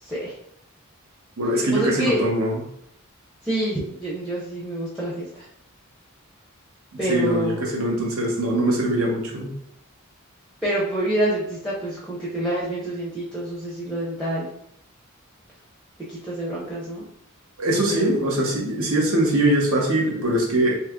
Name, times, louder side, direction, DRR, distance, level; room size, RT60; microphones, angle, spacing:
voice 1, 0.0-0.4 1.7-2.2 3.4-5.5 7.0-7.6 10.6-14.5 16.1-17.0 17.9-18.1, right 1 dB, ahead, -7 dB, 0.5 m, -27 dB
voice 2, 1.4-2.6 7.0-9.5 17.6-20.8, right 1 dB, 70° right, -1 dB, 0.8 m, -22 dB
2.8 x 2.4 x 3.5 m, 0.73 s
head